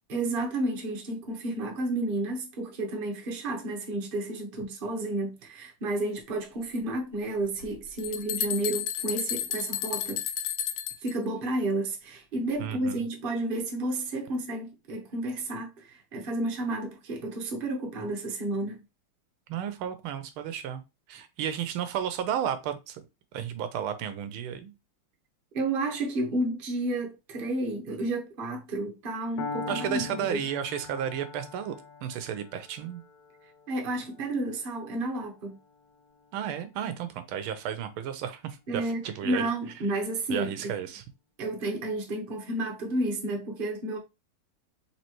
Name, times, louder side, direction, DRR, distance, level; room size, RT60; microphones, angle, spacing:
voice 1, 0.1-10.2 11.0-18.8 21.1-21.2 25.5-30.4 33.7-35.6 38.7-40.5 41.4-44.0, right 2 dB, 45° right, 0.7 m, -31 dB
sound 1, 7.6-7.7 8.0-11.1, left 9 dB, 90° left, 1.5 m, -32 dB
voice 2, 12.6-13.0 19.5-20.8 21.1-23.0 23.3-24.7 29.7-31.7 32.0-33.0 36.3-39.5 40.3-41.0, right 9 dB, 80° right, 1.4 m, -33 dB
Piano, 29.4-37.3, left 4 dB, 70° left, 1.4 m, -43 dB
4.3 x 3.3 x 2.9 m
omnidirectional pair, 2.4 m